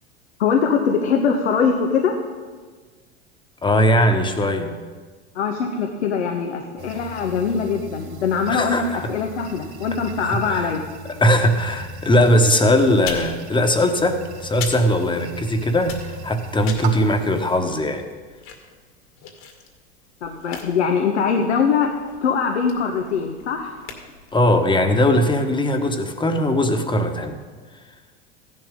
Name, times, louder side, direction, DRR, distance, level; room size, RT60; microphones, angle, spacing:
voice 1, 0.4-2.2 5.3-10.8 20.2-21.9 22.2-23.7, left 6 dB, 85° left, 3 dB, 1.2 m, -22 dB
voice 2, 3.6-4.8 8.5-9.1 10.3-10.7 11.2-18.0 24.3-27.4, left 1 dB, 15° left, 6 dB, 1.3 m, -19 dB
sound 1, 6.8-17.6, right 2 dB, 80° right, 2.3 m, -39 dB
sound 2, 13.0-15.5 15.8-24.6, left 5 dB, 55° left, 2.1 m, -39 dB
15.0 x 11.0 x 3.7 m, 1.5 s
hypercardioid pair, 90°, 33 cm